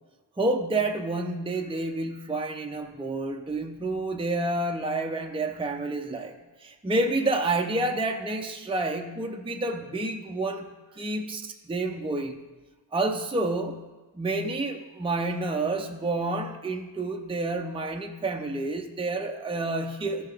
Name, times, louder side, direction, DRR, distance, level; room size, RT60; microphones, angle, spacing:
voice 1, 0.4-12.4 12.9-20.3, right 2 dB, 10° right, 3 dB, 0.6 m, -29 dB
14.0 x 5.7 x 3.5 m, 1.2 s
wide cardioid pair, 85°, 43 cm